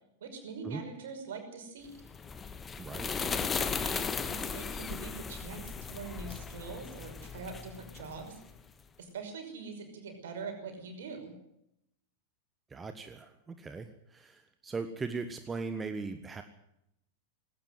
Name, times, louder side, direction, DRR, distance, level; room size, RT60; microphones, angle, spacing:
voice 1, 0.2-1.9 3.2-8.4 9.0-11.3, right 4 dB, 60° right, 6 dB, 5.7 m, -43 dB
sound 1, 2.0-8.6, left 5 dB, 20° left, 1.6 m, -37 dB
voice 2, 2.8-3.1 12.7-16.4, right 4 dB, 15° right, 8 dB, 1.4 m, -39 dB
19.0 x 18.0 x 7.8 m, 0.78 s
figure-of-eight pair, 90°, 0 cm